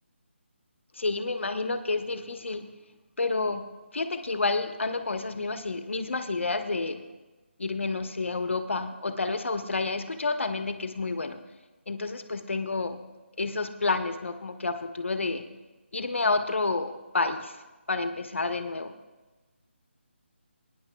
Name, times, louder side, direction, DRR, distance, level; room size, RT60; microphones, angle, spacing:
voice 1, 0.9-2.7 3.2-3.6 3.9-7.0 7.6-11.4 11.9-13.0 13.4-15.5 15.9-17.6 17.9-18.9, left 3 dB, 75° left, 8 dB, 1.1 m, -29 dB
22.5 x 10.0 x 2.3 m, 1.2 s
hypercardioid pair, 175°, 7 cm